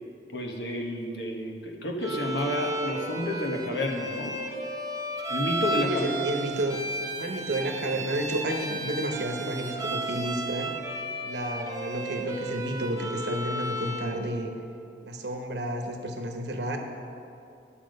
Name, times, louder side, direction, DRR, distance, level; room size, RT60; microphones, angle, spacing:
voice 1, 0.3-4.4 5.3-6.1, left 1 dB, 85° left, 1 dB, 1.2 m, -30 dB
Bowed string instrument, 2.0-14.2, right 1 dB, 20° right, 0.7 m, -33 dB
voice 2, 5.9-6.8 7.2-10.7 11.2-14.5 15.0-16.8, right 1 dB, 75° right, 4 dB, 1.0 m, -31 dB
11.0 x 7.2 x 5.2 m, 2.6 s
head